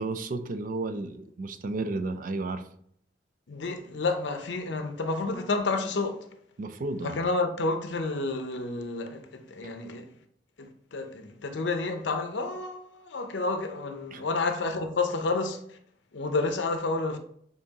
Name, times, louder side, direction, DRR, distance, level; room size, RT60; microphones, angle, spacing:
voice 1, 0.0-2.7 6.6-7.1 14.1-14.2, right 3 dB, 50° right, 0.4 m, -32 dB
voice 2, 3.5-6.3 7.0-10.1 10.6-15.8 16.1-17.2, left 3 dB, 80° left, 0.6 m, -30 dB
6.7 x 2.8 x 2.8 m
head